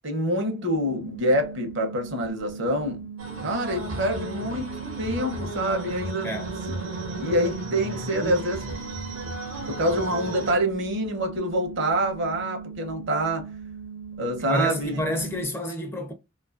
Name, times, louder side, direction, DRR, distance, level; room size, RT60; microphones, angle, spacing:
voice 1, 0.0-3.1 3.4-6.3 7.2-8.7 9.7-13.5 14.2-15.0, right 1 dB, 60° right, 0.7 m, -26 dB
sound 1, 0.7-15.4, right 6 dB, 85° left, 0.6 m, -40 dB
sound 2, 3.2-10.5, right 2 dB, 80° right, 0.9 m, -34 dB
voice 2, 14.4-16.1, equal, 10° left, 0.4 m, -29 dB
2.6 x 2.4 x 2.4 m
head